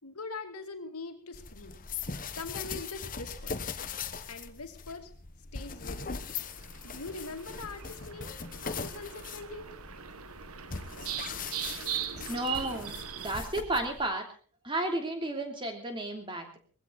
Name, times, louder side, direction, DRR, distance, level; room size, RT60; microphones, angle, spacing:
voice 1, 0.0-1.9 2.3-3.7 4.3-5.1 5.5-6.3 6.8-9.7, left 3 dB, 85° left, 5 dB, 2.5 m, -42 dB
sound 1, 1.3-14.1, left 5 dB, 35° left, 1.1 m, -40 dB
sound 2, 6.5-13.3, right 9 dB, 80° right, 1.3 m, -40 dB
voice 2, 12.3-14.2 14.6-16.6, right 1 dB, 20° right, 4 dB, 3.0 m, -33 dB
20.0 x 15.5 x 4.0 m, 0.40 s
head